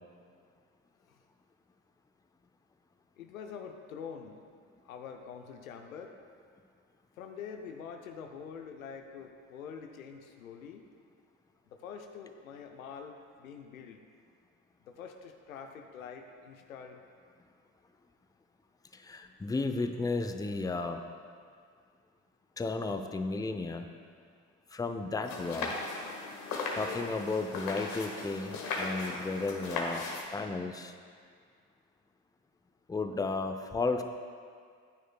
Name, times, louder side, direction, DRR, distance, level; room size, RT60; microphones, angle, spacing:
voice 1, 3.2-4.4 4.8-6.2 7.2-10.9 11.7-14.0 14.8-17.0, left 6 dB, 85° left, 5 dB, 0.7 m, -45 dB
voice 2, 18.9-21.1 22.6-23.9 24.7-25.7 26.7-30.1 30.3-30.9 32.9-34.0, left 3 dB, 10° left, 7 dB, 0.6 m, -33 dB
sound 1, 25.2-30.2, left 3 dB, 55° left, 1.7 m, -37 dB
13.0 x 9.2 x 2.3 m, 2.1 s
hypercardioid pair, 55°, 40 cm